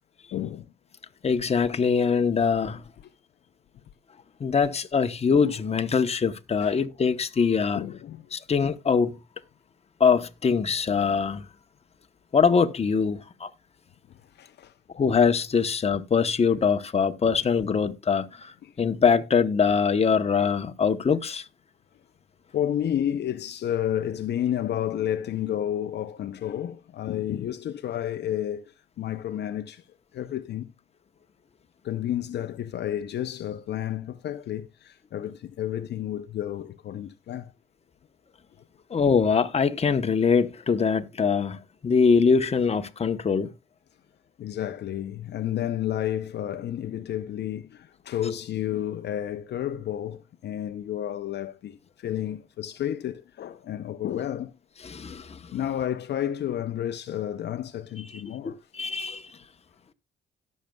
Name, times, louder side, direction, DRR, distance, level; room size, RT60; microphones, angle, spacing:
voice 1, 0.3-0.7 6.6-6.7 7.7-8.3 14.1-14.7 18.6-18.8 22.5-29.9 30.1-30.7 31.8-37.5 44.4-54.6 55.5-58.6, left 11 dB, 60° left, 0.6 m, -31 dB
voice 2, 1.2-2.8 4.4-7.8 8.3-9.2 10.0-11.4 12.3-13.5 14.9-21.5 38.9-43.5 54.8-55.5 58.1-59.4, left 6 dB, 30° left, 0.9 m, -23 dB
17.5 x 6.5 x 2.3 m
cardioid pair, 90°, 20 cm